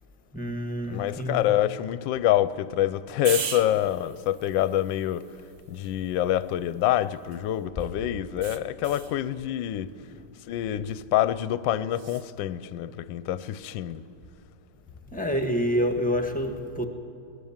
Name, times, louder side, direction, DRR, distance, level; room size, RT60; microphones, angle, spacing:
voice 1, 0.3-1.5 15.1-16.8, equal, 5° left, 1.3 m, -27 dB
voice 2, 0.9-5.3 5.7-9.9 10.5-14.0, left 12 dB, 70° left, 1.3 m, -26 dB
sound 1, 3.2-7.6 8.4-9.2 11.9-12.3, right 7 dB, 50° right, 0.9 m, -39 dB
22.0 x 18.5 x 7.3 m
omnidirectional pair, 2.2 m